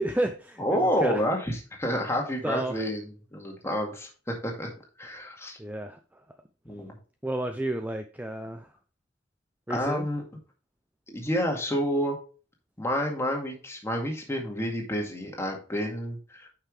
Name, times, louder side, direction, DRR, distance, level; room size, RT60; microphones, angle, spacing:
voice 1, 0.0-1.2 2.4-2.8 5.6-6.2 7.2-8.7 9.7-10.1, right 1 dB, 10° right, 0.5 m, -31 dB
voice 2, 0.6-4.7 5.0-5.6 6.7-7.0 9.7-10.2 11.1-12.2 12.8-16.5, equal, 15° left, 2.1 m, -29 dB
9.1 x 5.8 x 3.2 m
head